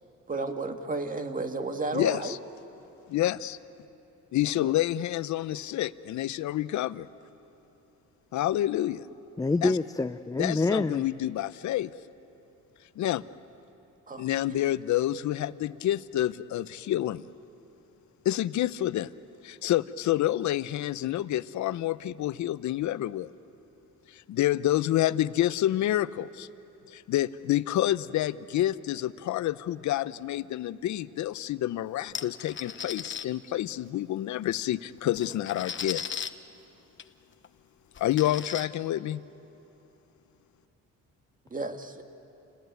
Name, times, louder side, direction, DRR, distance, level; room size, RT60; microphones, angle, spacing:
voice 1, 0.3-2.4 4.6-4.7 14.1-14.3 41.5-42.0, right 3 dB, 25° right, 6 dB, 1.8 m, -33 dB
voice 2, 1.9-2.4 3.1-3.6 4.3-7.1 8.3-9.0 9.6-9.7 10.4-11.9 13.0-13.2 14.2-17.2 18.2-19.1 19.4-23.3 24.1-26.5 26.9-36.1 38.0-39.2, left 13 dB, 70° left, 16 dB, 0.7 m, -28 dB
voice 3, 9.4-11.1, left 3 dB, 10° left, 9 dB, 0.5 m, -26 dB
sound 1, 32.1-33.3 34.5-34.6 35.0-36.3 37.0-37.1 37.4-37.5 38.0-38.7, left 7 dB, 40° left, 1.0 m, -36 dB
28.5 x 18.5 x 9.4 m, 3.0 s
cardioid pair, 90°, 30 cm